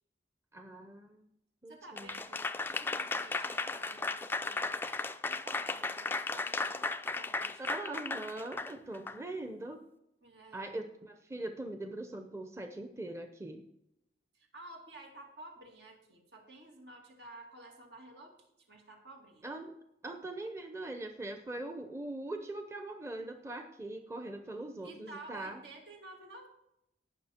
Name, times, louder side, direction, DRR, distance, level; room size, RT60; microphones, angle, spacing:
voice 1, 0.5-1.3 1.6-2.1 7.6-9.8 10.5-13.6 19.4-19.7 20.0-25.6, right 2 dB, 15° right, 6 dB, 0.7 m, -41 dB
voice 2, 1.7-6.8 7.1-7.7 10.2-10.8 14.3-18.4 18.7-19.5 24.8-26.5, right 2 dB, 80° right, 1 dB, 2.4 m, -52 dB
Applause / Crowd, 2.0-9.2, left 3 dB, 10° left, 0.3 m, -35 dB
18.0 x 6.3 x 4.4 m, 0.82 s
head